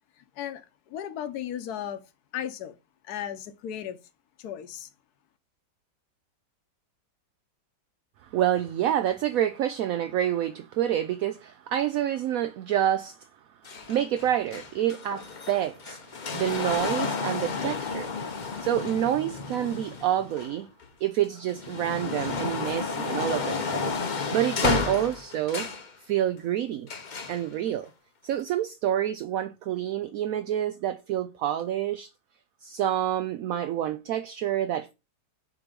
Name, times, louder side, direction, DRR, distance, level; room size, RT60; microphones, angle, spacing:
voice 1, 0.2-2.0 2.3-2.8 3.0-4.0 4.4-4.9, left 10 dB, 65° left, 1.3 m, -35 dB
voice 2, 8.2-13.3 13.9-20.7 21.0-24.0 24.3-25.7 26.0-26.9 27.3-27.9 28.2-32.1 32.6-34.9, right 11 dB, 70° right, 0.8 m, -28 dB
sound 1, 13.6-20.8 21.3-25.9 26.9-27.4 28.3-28.4, left 4 dB, 45° left, 0.6 m, -32 dB
7.8 x 3.0 x 5.1 m
omnidirectional pair, 1.9 m